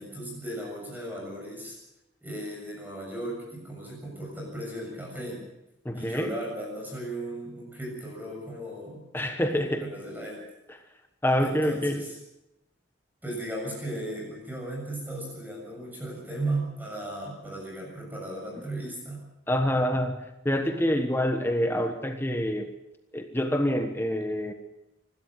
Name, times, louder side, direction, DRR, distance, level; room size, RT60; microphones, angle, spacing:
voice 1, 0.0-1.8 2.2-5.4 5.9-9.0 9.5-10.4 11.4-12.2 13.2-19.3, right 1 dB, 10° right, -2 dB, 7.0 m, -36 dB
voice 2, 5.8-6.3 9.1-9.9 11.2-12.0 19.5-20.2 20.4-22.7 23.1-24.5, equal, 10° left, 6 dB, 1.3 m, -26 dB
26.0 x 13.0 x 7.7 m, 0.92 s
head